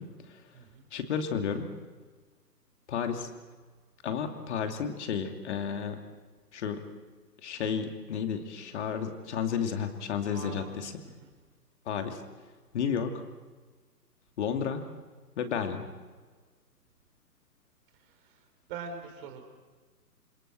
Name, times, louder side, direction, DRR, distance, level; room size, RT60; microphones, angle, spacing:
voice 1, 0.0-0.4 0.9-1.7 2.9-3.3 4.0-6.0 6.5-6.8 7.4-10.9 11.9-12.2 12.7-13.2 14.4-14.8 15.4-15.9, left 7 dB, 45° left, 5 dB, 2.8 m, -32 dB
voice 2, 0.5-0.9 10.3-11.3 18.0-19.4, right 5 dB, 30° right, 5 dB, 3.8 m, -44 dB
28.5 x 27.5 x 4.5 m, 1.4 s
figure-of-eight pair, 130°, 49 cm